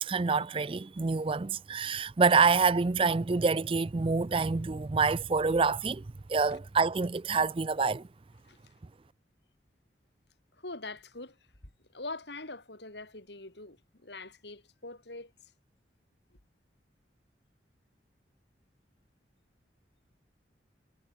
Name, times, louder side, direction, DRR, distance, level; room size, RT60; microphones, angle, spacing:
voice 1, 0.0-6.0 6.3-8.1, right 4 dB, 30° right, 0.4 m, -27 dB
voice 2, 10.6-11.4 11.9-15.3, left 2 dB, 70° left, 4.4 m, -43 dB
head